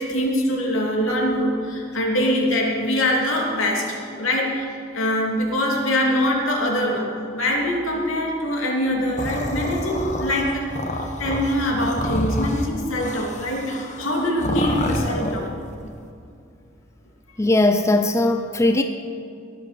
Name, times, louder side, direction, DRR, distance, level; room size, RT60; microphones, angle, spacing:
voice 1, 0.0-4.7 4.9-10.7 11.2-15.5, left 1 dB, 80° left, -1 dB, 3.1 m, -23 dB
sound 1, 9.2-15.5, left 1 dB, 35° left, 1.3 m, -28 dB
voice 2, 17.4-18.8, left 2 dB, 15° left, 7 dB, 0.6 m, -19 dB
21.5 x 8.3 x 6.7 m, 2.4 s
head